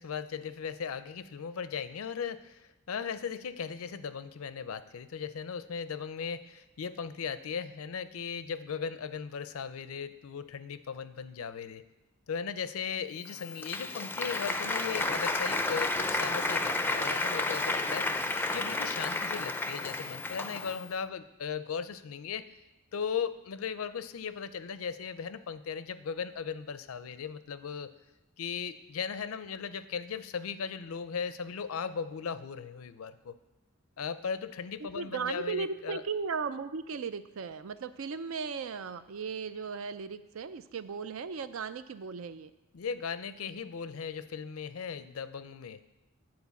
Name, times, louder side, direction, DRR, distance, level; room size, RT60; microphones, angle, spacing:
voice 1, 0.0-11.8 12.3-18.1 18.5-22.4 22.9-27.9 28.4-33.4 34.0-36.0 42.7-45.8, left 6 dB, 85° left, 13 dB, 0.5 m, -37 dB
Applause, 13.3-20.9, left 2 dB, 10° left, 0.4 m, -31 dB
voice 2, 34.8-42.5, right 5 dB, 70° right, 13 dB, 0.4 m, -36 dB
9.6 x 4.4 x 7.0 m, 1.0 s
head